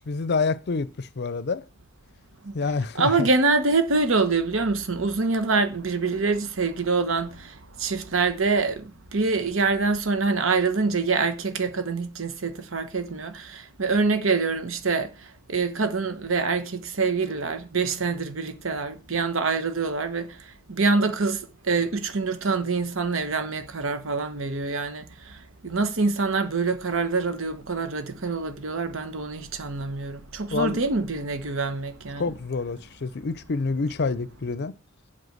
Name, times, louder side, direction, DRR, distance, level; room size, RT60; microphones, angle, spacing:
voice 1, 0.0-1.6 2.5-3.3 30.5-30.8 32.2-34.7, left 4 dB, 55° left, 0.5 m, -27 dB
voice 2, 2.4-32.4, right 4 dB, 70° right, 1.1 m, -25 dB
7.8 x 5.8 x 7.9 m
head